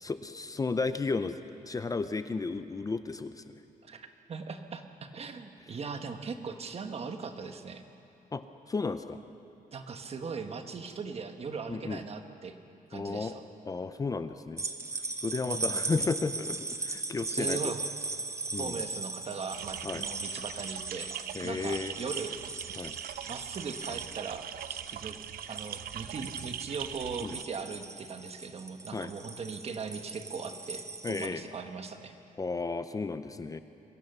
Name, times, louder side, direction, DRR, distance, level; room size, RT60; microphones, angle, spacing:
voice 1, 0.0-1.4 1.6-3.5 8.3-9.2 11.7-12.0 12.9-13.4 13.7-14.6 15.2-17.7 18.5-18.8 19.8-20.0 21.3-21.9 22.8-23.0 27.2-27.4 28.9-29.1 31.0-31.4 32.4-33.6, left 4 dB, 25° left, 10 dB, 0.6 m, -33 dB
voice 2, 3.8-7.8 9.7-12.6 12.9-13.4 15.4-15.8 17.3-17.9 18.6-21.1 21.4-22.7 23.3-25.2 25.5-32.2, right 5 dB, 45° right, 7 dB, 1.3 m, -39 dB
sound 1, 14.6-31.3, right 3 dB, 20° right, 1.0 m, -38 dB
sound 2, 19.5-27.4, right 10 dB, 90° right, 0.6 m, -41 dB
23.0 x 16.5 x 6.7 m, 2.7 s
wide cardioid pair, 140°, 15 cm